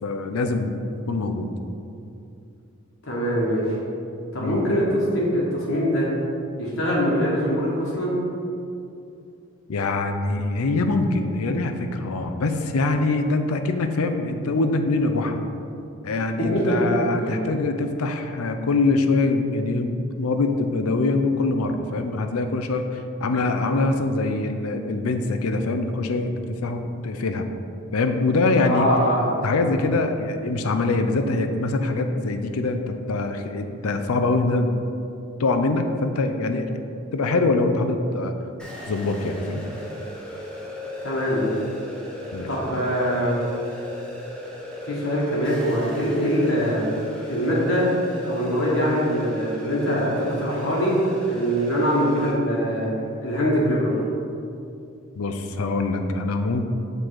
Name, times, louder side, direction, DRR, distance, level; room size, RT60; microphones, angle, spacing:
voice 1, 0.0-0.8 1.1-1.5 4.4-4.7 9.7-15.4 16.0-27.5 27.9-28.9 29.4-34.7 35.4-36.7 37.1-38.3 38.9-39.6 42.3-42.5 55.2-56.6, left 3 dB, 90° left, 7 dB, 0.5 m, -24 dB
voice 2, 3.0-3.8 4.3-6.1 6.6-8.2 16.4-16.8 17.2-17.3 28.6-29.2 41.0-41.5 42.5-43.4 44.8-46.8 47.3-47.9 48.2-51.0 51.3-52.9 53.2-53.9, equal, 65° left, -5 dB, 1.3 m, -23 dB
sound 1, 38.6-52.3, left 1 dB, 5° left, 0.8 m, -36 dB
6.7 x 3.9 x 4.6 m, 2.6 s
head